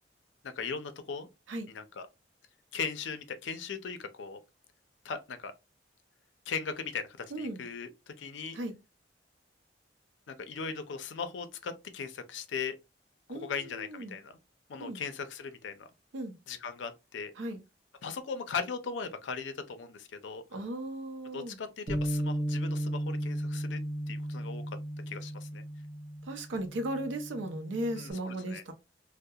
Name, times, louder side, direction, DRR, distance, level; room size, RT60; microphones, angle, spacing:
voice 1, 0.4-1.3 1.7-2.1 2.7-4.4 5.0-5.5 6.5-8.6 10.3-12.8 13.3-14.4 14.7-15.9 16.5-17.3 18.0-20.4 21.3-23.8 24.1-24.6 25.1-25.6 28.0-28.6, left 5 dB, 75° left, 0.4 m, -38 dB
voice 2, 7.3-7.7 8.5-8.7 13.3-14.1 14.8-15.0 16.1-16.4 17.4-17.6 20.5-21.6 26.2-28.7, right 1 dB, 85° right, 0.5 m, -36 dB
Bass guitar, 21.9-28.1, equal, 20° right, 0.8 m, -35 dB
2.3 x 2.0 x 2.7 m
head